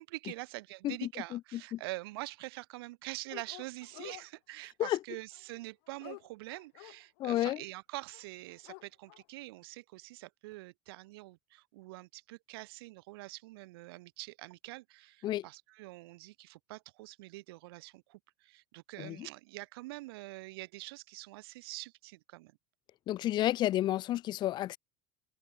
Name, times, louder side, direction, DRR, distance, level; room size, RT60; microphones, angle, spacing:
voice 1, 0.0-22.5, right 21 dB, 90° right, 0.8 m, -45 dB
voice 2, 0.8-1.8 4.8-5.0 7.2-7.6 15.2-15.4 19.0-19.3 23.1-24.8, left 14 dB, 35° left, 0.5 m, -31 dB
Dog, 3.3-4.3 5.3-7.4 8.1-8.2 8.5-9.2, left 31 dB, 75° left, 1.6 m, -50 dB
open air
supercardioid pair, 140°, 12 cm